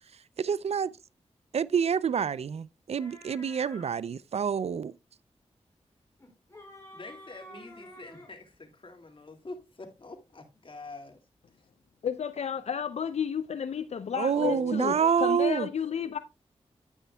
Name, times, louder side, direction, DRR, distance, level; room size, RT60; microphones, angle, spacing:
voice 1, 0.4-0.9 1.5-4.9 14.2-15.7, right 7 dB, 65° right, 0.4 m, -27 dB
sound 1, 3.0-3.9 6.2-8.3, left 1 dB, 25° left, 4.8 m, -49 dB
voice 2, 6.9-11.2 14.3-15.1, left 3 dB, 50° left, 2.1 m, -44 dB
voice 3, 12.0-16.2, left 7 dB, 70° left, 0.5 m, -32 dB
9.8 x 9.2 x 2.2 m
cardioid pair, 60°, 12 cm